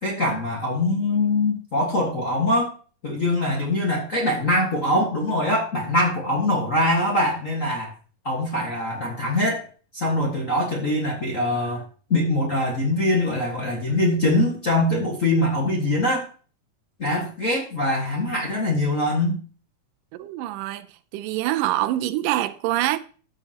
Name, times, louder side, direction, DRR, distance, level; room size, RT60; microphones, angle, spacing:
voice 1, 0.0-2.7 3.0-7.9 8.2-9.6 9.9-11.8 12.1-16.3 17.0-19.3, left 1 dB, 35° left, 1.3 m, -23 dB
voice 2, 20.1-20.9 21.1-23.0, right 14 dB, 85° right, 2.2 m, -25 dB
13.5 x 6.8 x 2.9 m
omnidirectional pair, 3.9 m